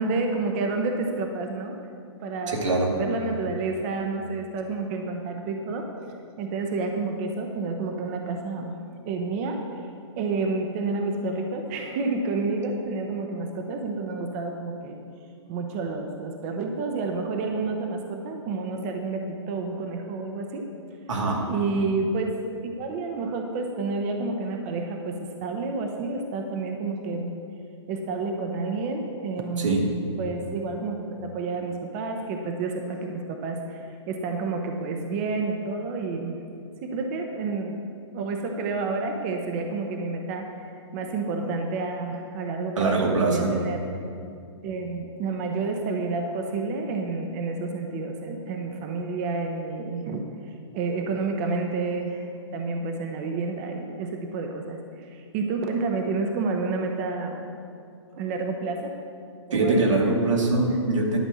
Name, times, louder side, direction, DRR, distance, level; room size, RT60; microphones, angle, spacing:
voice 1, 0.0-1.8 2.2-2.5 2.9-5.9 6.4-8.7 9.1-9.9 10.2-15.0 15.5-20.7 21.5-27.4 27.9-29.8 30.2-36.3 36.8-37.8 38.1-43.8 44.6-50.2 50.7-57.4 58.1-59.0 59.5-59.9, right 3 dB, 30° right, 3 dB, 0.7 m, -29 dB
voice 2, 2.5-2.9 21.1-21.4 29.6-29.8 42.8-43.5 59.5-61.2, right 2 dB, 90° right, -1 dB, 2.4 m, -23 dB
11.0 x 5.2 x 7.5 m, 2.4 s
hypercardioid pair, 155°, 15 cm